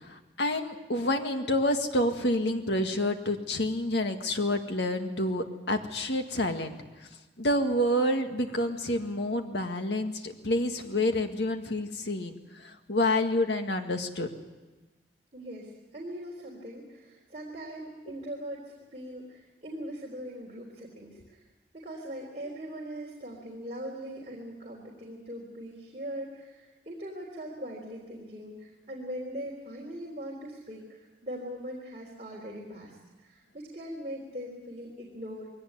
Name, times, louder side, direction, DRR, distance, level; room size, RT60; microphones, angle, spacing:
voice 1, 0.0-6.8 7.4-14.3, left 1 dB, 85° left, 5 dB, 2.0 m, -28 dB
voice 2, 15.3-21.4 21.7-35.5, equal, 40° right, -3 dB, 3.7 m, -41 dB
21.5 x 18.0 x 9.5 m, 1.2 s
head